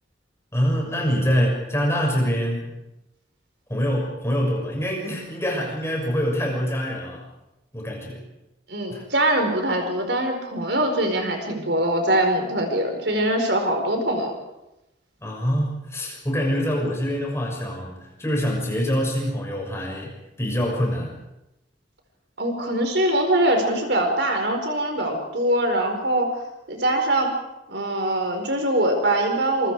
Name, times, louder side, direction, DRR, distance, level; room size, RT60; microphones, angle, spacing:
voice 1, 0.5-2.7 3.7-7.3 7.7-8.2 8.9-9.0 15.2-21.1, equal, 15° left, 0 dB, 6.4 m, -25 dB
voice 2, 8.7-14.4 22.4-26.4 26.7-27.3 27.7-29.7, right 1 dB, 65° right, 4 dB, 4.8 m, -23 dB
27.5 x 24.0 x 4.9 m, 0.92 s
head